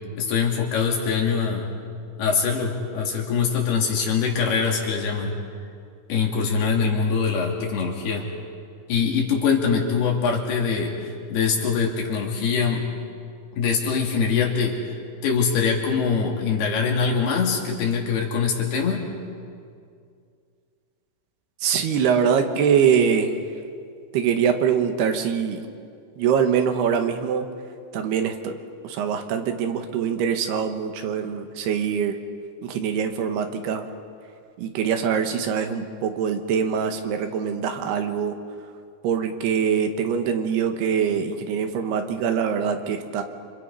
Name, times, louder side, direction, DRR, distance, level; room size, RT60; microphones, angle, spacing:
voice 1, 0.2-1.7 2.2-5.4 6.1-8.3 8.9-12.9 13.6-15.0 15.2-19.1, left 5 dB, 75° left, 0 dB, 4.8 m, -23 dB
voice 2, 21.6-23.3 24.1-25.6 26.2-27.5 27.9-28.6 28.8-32.2 32.6-33.9 34.6-38.4 39.0-43.2, right 7 dB, 85° right, 6 dB, 3.4 m, -23 dB
29.0 x 26.0 x 5.6 m, 2.3 s
omnidirectional pair, 4.5 m